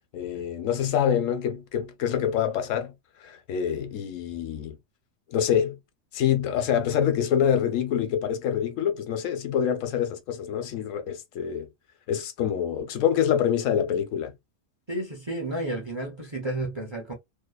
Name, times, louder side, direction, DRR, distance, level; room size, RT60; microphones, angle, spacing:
voice 1, 0.1-2.9 3.2-4.8 5.3-5.8 6.1-11.7 12.1-14.3, left 9 dB, 85° left, 1.0 m, -26 dB
voice 2, 14.9-17.1, right 1 dB, 35° right, 0.5 m, -31 dB
2.8 x 2.2 x 2.2 m
omnidirectional pair, 1.3 m